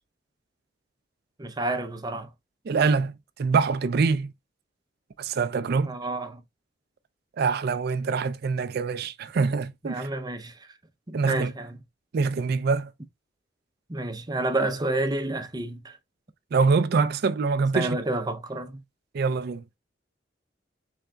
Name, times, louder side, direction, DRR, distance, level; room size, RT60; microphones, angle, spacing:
voice 1, 1.4-2.3 5.8-6.4 9.8-10.6 11.1-11.8 13.9-16.0 17.7-18.8, right 2 dB, 20° right, 0.7 m, -29 dB
voice 2, 2.7-4.3 5.2-5.9 7.4-10.1 11.1-11.5 12.1-12.9 16.5-18.0 19.1-19.6, right 4 dB, 55° right, 0.4 m, -24 dB
3.8 x 3.5 x 3.3 m
head